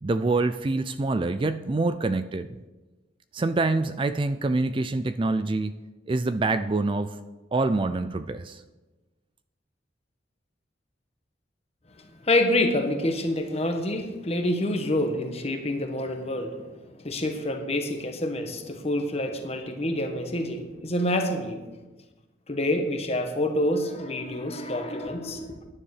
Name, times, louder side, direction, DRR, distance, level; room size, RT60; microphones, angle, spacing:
voice 1, 0.0-2.5 3.3-5.8 6.1-7.2 7.5-8.6, right 3 dB, 30° right, 12 dB, 0.4 m, -26 dB
voice 2, 12.2-16.6 17.0-21.6 22.5-25.6, left 1 dB, 35° left, 5 dB, 1.4 m, -27 dB
10.5 x 9.8 x 6.5 m, 1.2 s
head